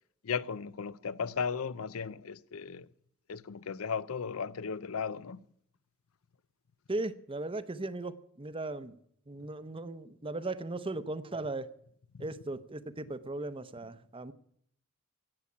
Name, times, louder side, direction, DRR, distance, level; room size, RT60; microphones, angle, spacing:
voice 1, 0.2-2.9 3.3-5.4 12.1-12.3, left 6 dB, 85° left, 0.6 m, -36 dB
voice 2, 6.9-9.0 9.3-11.7 12.2-14.3, right 2 dB, 25° right, 0.8 m, -37 dB
16.5 x 7.3 x 9.8 m
head